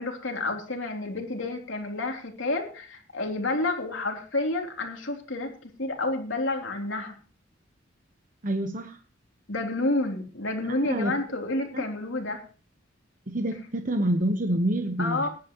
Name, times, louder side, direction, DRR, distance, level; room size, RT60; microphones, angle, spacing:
voice 1, 0.0-7.2 9.5-12.4 15.0-15.3, left 2 dB, 75° left, 2 dB, 3.3 m, -30 dB
voice 2, 8.4-9.0 10.8-11.1 11.7-11.9 13.3-15.3, right 1 dB, 45° right, 5 dB, 1.2 m, -27 dB
19.5 x 11.0 x 3.1 m, 0.38 s
head